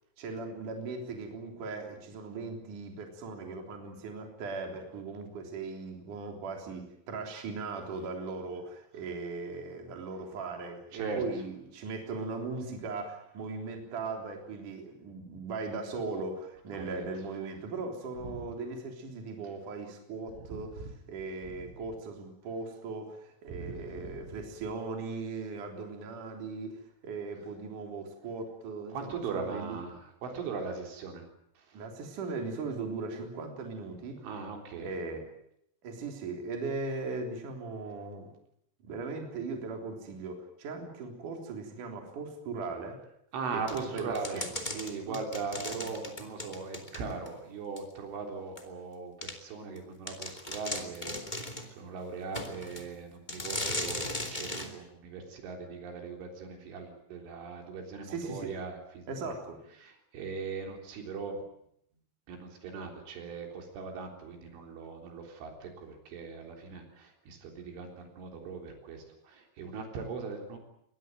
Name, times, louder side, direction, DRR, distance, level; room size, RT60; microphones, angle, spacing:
voice 1, 0.2-20.7 21.1-29.8 31.7-34.2 34.8-35.3 35.8-38.3 38.8-43.0 43.5-44.5 45.1-45.2 58.0-58.5 59.1-59.6, right 3 dB, 45° right, 3 dB, 4.7 m, -38 dB
voice 2, 10.9-11.2 16.7-17.1 18.2-18.5 20.4-20.5 23.5-24.4 28.9-31.3 31.6-31.8 34.2-34.9 43.3-51.2 51.7-59.3 59.8-61.4 62.3-70.6, right 4 dB, 75° right, 3 dB, 6.1 m, -39 dB
sound 1, 43.7-47.3 47.8-47.9 48.6-48.7 49.2-49.4 49.8-49.9 50.1-51.7 52.3-52.9 53.3-54.7, left 1 dB, 15° left, 1.7 m, -37 dB
24.0 x 19.5 x 9.1 m, 0.74 s
omnidirectional pair, 5.6 m